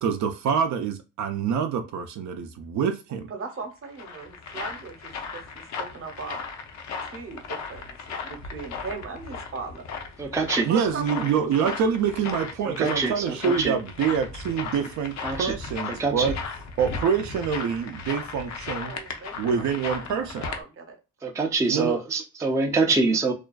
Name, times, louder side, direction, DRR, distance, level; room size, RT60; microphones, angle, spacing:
voice 1, 0.0-3.3 10.6-16.3 16.8-18.9 19.4-20.5 21.7-22.0, right 7 dB, 70° right, 0.4 m, -26 dB
voice 2, 3.1-5.4 5.7-6.4 7.0-7.9 8.2-9.9 10.7-11.6 18.8-19.6 19.9-20.9, right 4 dB, 45° right, 0.8 m, -38 dB
sound 1, 3.6-20.6, left 4 dB, 65° left, 0.6 m, -36 dB
voice 3, 10.2-10.7 11.6-11.7 12.8-13.7 15.2-15.5 15.9-16.3 21.2-23.3, right 3 dB, 10° right, 0.4 m, -25 dB
2.4 x 2.3 x 2.2 m
cardioid pair, 90°, 30 cm